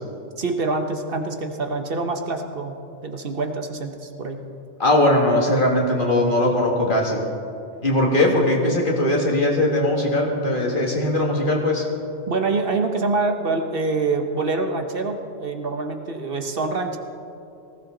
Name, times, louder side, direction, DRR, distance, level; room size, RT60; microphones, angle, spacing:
voice 1, 0.4-2.8 3.0-4.4 12.3-17.0, right 3 dB, 55° right, 5 dB, 1.1 m, -25 dB
voice 2, 4.8-7.2 7.8-11.9, left 1 dB, 50° left, -1 dB, 2.1 m, -20 dB
18.5 x 15.5 x 3.9 m, 2.6 s
omnidirectional pair, 1.2 m